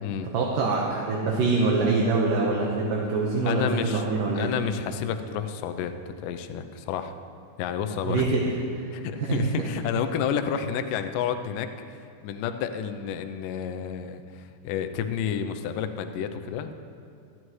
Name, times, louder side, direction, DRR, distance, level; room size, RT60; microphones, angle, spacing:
voice 1, 0.3-4.5 8.0-8.5 8.8-8.9 9.2-9.5, right 3 dB, 70° right, -2 dB, 2.6 m, -24 dB
voice 2, 3.4-4.0 4.3-7.1 7.6-8.3 8.9-16.7, left 8 dB, 75° left, 7 dB, 2.2 m, -30 dB
27.0 x 11.0 x 3.2 m, 2.3 s
omnidirectional pair, 4.3 m